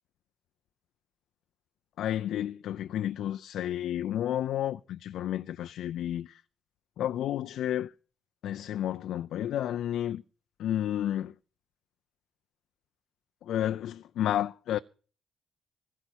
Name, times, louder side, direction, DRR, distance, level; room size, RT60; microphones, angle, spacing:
voice 1, 2.0-6.4 7.0-7.9 8.4-10.2 10.6-11.3 13.4-14.8, left 11 dB, 80° left, 0.6 m, -31 dB
16.5 x 5.8 x 9.9 m
cardioid pair, 90°, 0 cm